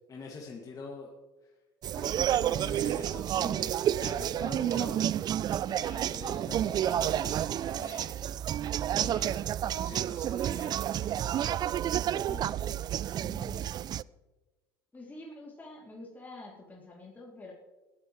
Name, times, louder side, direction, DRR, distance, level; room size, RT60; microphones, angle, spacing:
voice 1, 0.1-1.1 1.4-1.5 1.9-5.0 5.7-8.2 8.9-11.4, left 4 dB, 35° left, -1 dB, 2.1 m, -45 dB
sound 1, 1.8-14.0, right 11 dB, 40° right, 0.3 m, -30 dB
voice 2, 12.1-12.5 13.1-13.8 14.9-17.5, left 2 dB, 15° left, -3 dB, 2.8 m, -47 dB
21.0 x 13.5 x 3.1 m, 1.2 s
hypercardioid pair, 70°, 11 cm